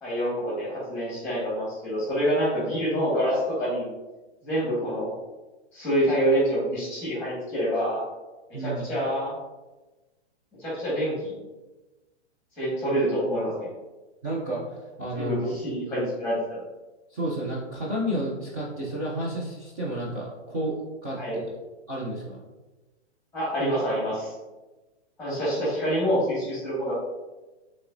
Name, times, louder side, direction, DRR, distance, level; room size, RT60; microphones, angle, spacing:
voice 1, 0.0-3.9 4.4-5.1 5.7-8.0 8.6-9.3 10.6-11.4 12.6-13.7 15.1-16.6 21.2-21.4 23.3-24.3 25.2-26.9, equal, 5° left, -8 dB, 1.3 m, -26 dB
voice 2, 8.5-8.8 14.2-15.5 17.1-21.6 21.9-22.4, right 1 dB, 15° right, -6 dB, 0.3 m, -31 dB
5.6 x 3.1 x 2.5 m, 1.1 s
hypercardioid pair, 140°, 34 cm